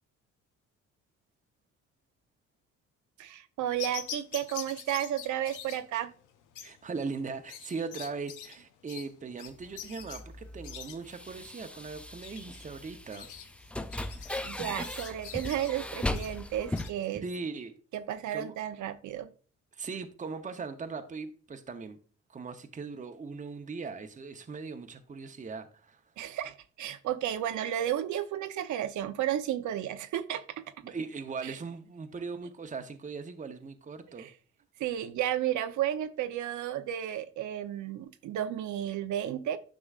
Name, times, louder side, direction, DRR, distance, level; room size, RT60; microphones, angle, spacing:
voice 1, 3.2-6.1 14.4-17.2 17.9-19.3 26.2-30.4 31.4-31.6 34.2-34.3 34.8-39.6, right 11 dB, 75° right, 0.7 m, -33 dB
sound 1, 3.8-16.9, left 9 dB, 85° left, 0.8 m, -45 dB
voice 2, 6.6-13.3 17.1-17.7 18.3-18.5 19.7-22.0 22.3-26.0 30.8-34.3, right 4 dB, 25° right, 0.8 m, -39 dB
sound 2, 9.5-16.9, left 1 dB, 5° left, 0.4 m, -38 dB
9.9 x 6.0 x 2.4 m
cardioid pair, 90°, 30 cm